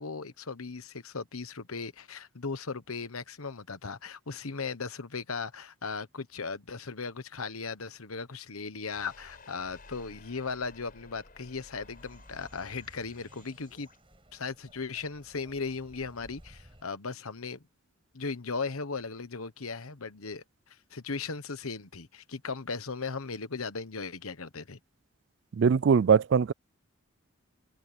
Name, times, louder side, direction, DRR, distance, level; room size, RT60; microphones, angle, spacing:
voice 1, 0.0-13.9 14.3-17.6 18.1-24.8, left 4 dB, 85° left, 1.2 m, -37 dB
sound 1, 8.9-14.0, left 2 dB, 40° left, 5.2 m, -54 dB
sound 2, 11.8-16.8, right 1 dB, 25° right, 6.0 m, -58 dB
voice 2, 25.6-26.5, right 6 dB, 55° right, 0.3 m, -21 dB
open air
head